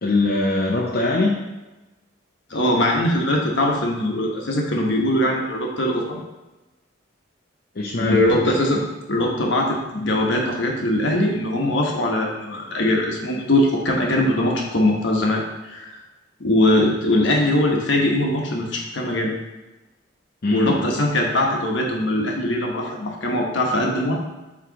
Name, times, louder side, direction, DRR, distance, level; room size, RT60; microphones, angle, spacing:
voice 1, 0.0-1.4 7.7-8.2 20.4-20.8, left 2 dB, 50° left, -3 dB, 0.6 m, -21 dB
voice 2, 2.5-6.2 8.0-15.9 16.4-19.3 20.5-24.1, left 1 dB, 65° left, 0 dB, 1.1 m, -21 dB
7.5 x 3.2 x 4.0 m, 1.1 s
head